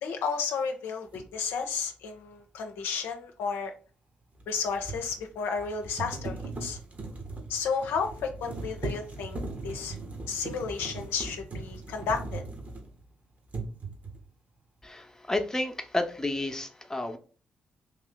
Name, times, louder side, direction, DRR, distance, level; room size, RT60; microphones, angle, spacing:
voice 1, 0.0-3.7 4.5-6.8 7.5-10.0 10.3-12.4, left 5 dB, 70° left, 4 dB, 0.5 m, -32 dB
sound 1, 1.1-1.3 4.3-13.1 13.5-14.3, right 3 dB, 40° right, 1.2 m, -39 dB
voice 2, 14.8-17.2, left 2 dB, 15° left, 5 dB, 0.8 m, -31 dB
3.2 x 2.7 x 3.9 m, 0.39 s
hypercardioid pair, 40°, 4 cm